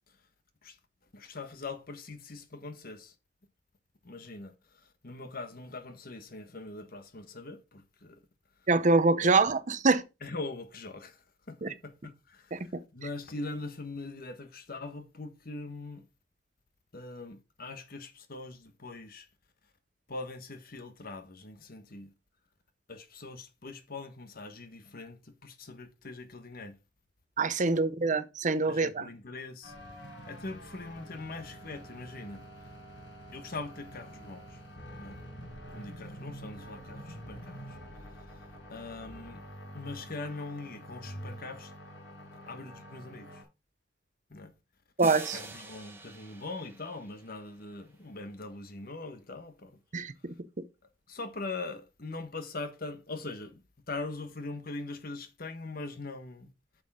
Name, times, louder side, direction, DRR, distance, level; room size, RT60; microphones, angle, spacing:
voice 1, 1.1-3.1 4.0-8.2 9.2-9.3 10.2-16.1 16.9-19.3 20.1-22.1 22.9-26.8 27.7-27.8 28.7-29.7 30.3-32.4 33.3-34.6 34.9-35.2 35.7-37.8 38.3-39.4 39.7-41.7 42.5-43.4 44.3-44.5 45.3-49.8 51.1-56.5, left 3 dB, 55° left, 1.4 m, -42 dB
voice 2, 8.7-10.0 11.6-11.7 12.5-12.7 27.4-29.1 45.0-45.4 49.9-50.3, right 3 dB, 45° right, 0.8 m, -25 dB
sound 1, 29.6-43.4, equal, 75° left, 5.5 m, -47 dB
sound 2, 45.0-47.8, right 2 dB, 15° right, 1.8 m, -45 dB
9.0 x 6.7 x 3.8 m
head